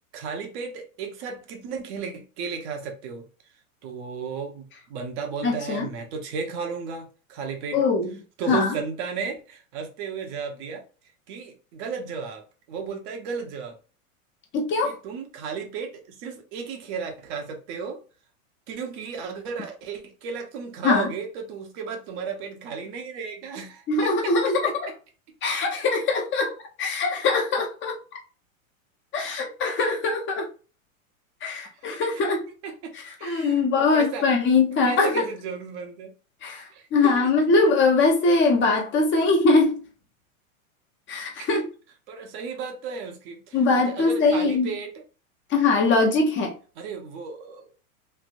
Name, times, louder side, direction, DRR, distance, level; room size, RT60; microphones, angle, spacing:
voice 1, 0.1-3.3 3.8-7.8 8.4-10.8 11.3-12.4 12.7-13.7 14.8-18.0 18.7-24.3 32.6-34.3 34.8-36.1 36.7-37.3 41.4-41.7 42.1-44.9 46.8-47.7, right 5 dB, 50° right, 1.0 m, -34 dB
voice 2, 5.4-5.9 7.7-8.1 8.5-8.7 14.5-14.9 20.8-21.1 23.9-24.9 25.4-28.0 29.1-30.5 31.4-32.4 32.9-35.3 36.4-39.8 41.1-41.6 43.5-44.7 45.5-46.5, left 3 dB, 25° left, 0.9 m, -22 dB
3.3 x 2.7 x 2.6 m
hypercardioid pair, 120°, 43 cm